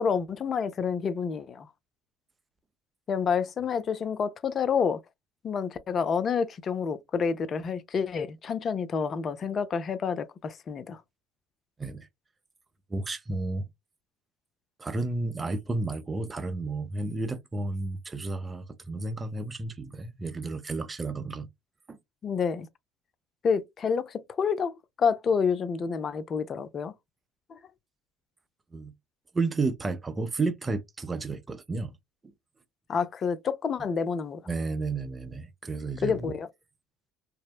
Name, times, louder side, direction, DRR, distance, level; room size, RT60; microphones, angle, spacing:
voice 1, 0.0-1.7 3.1-5.0 5.4-11.0 22.2-22.7 23.4-24.7 25.0-26.9 27.5-27.6 32.9-34.4 36.0-36.5, left 6 dB, 40° left, 0.4 m, -28 dB
voice 2, 12.9-13.6 14.8-21.5 21.9-22.0 28.7-28.9 29.3-31.9 32.2-32.3 34.5-36.3, right 3 dB, 25° right, 0.5 m, -32 dB
2.7 x 2.0 x 2.2 m
hypercardioid pair, 70°, 0 cm